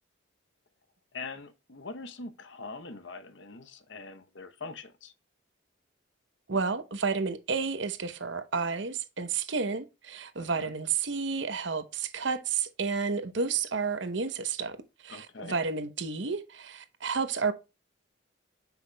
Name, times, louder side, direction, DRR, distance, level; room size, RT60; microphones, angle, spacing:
voice 1, 1.1-5.1 10.4-10.7 15.1-15.6, left 3 dB, 65° left, 0.8 m, -43 dB
voice 2, 6.5-14.8 15.0-17.5, right 5 dB, 65° right, 0.9 m, -31 dB
8.1 x 5.7 x 2.2 m
head